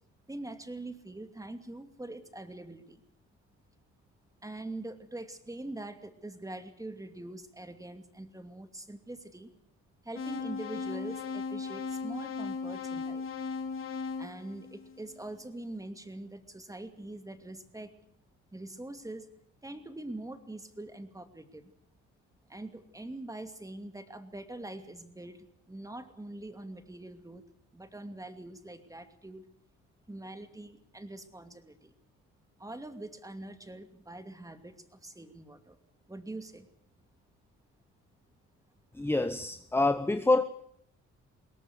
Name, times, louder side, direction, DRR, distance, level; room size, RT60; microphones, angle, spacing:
voice 1, 0.3-3.0 4.4-9.5 10.0-13.3 14.2-17.9 18.5-19.3 19.6-21.7 22.5-27.4 27.7-29.4 30.1-31.9 32.6-35.8 36.1-36.7, right 2 dB, 10° right, 8 dB, 2.6 m, -43 dB
sound 1, 10.1-15.3, left 5 dB, 45° left, 4.0 m, -37 dB
voice 2, 38.9-40.4, left 2 dB, 10° left, 11 dB, 1.0 m, -26 dB
21.5 x 18.0 x 8.1 m, 0.68 s
cardioid pair, 90°, 30 cm